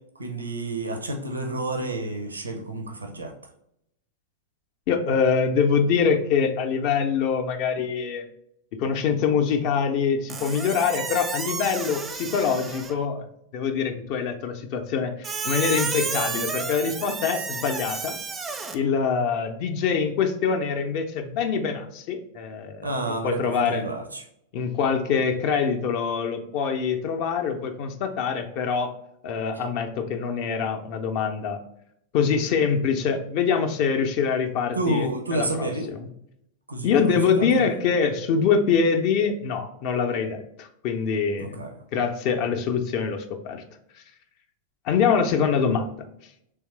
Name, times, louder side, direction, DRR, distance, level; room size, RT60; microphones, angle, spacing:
voice 1, 0.2-3.3 22.8-24.2 29.5-29.7 34.7-35.9 36.7-37.7 41.4-41.8, right 2 dB, 80° right, 4 dB, 0.6 m, -30 dB
voice 2, 4.9-8.3 8.7-13.3 13.5-18.2 18.7-23.9 24.5-28.9 29.2-31.6 32.1-35.7 36.8-41.6 41.9-43.6 44.9-45.9, left 6 dB, 45° left, 6 dB, 0.5 m, -24 dB
Squeak, 10.3-13.1 15.2-18.8, right 5 dB, 20° right, 0.4 m, -31 dB
3.5 x 3.1 x 3.0 m, 0.77 s
figure-of-eight pair, 90°, 0 cm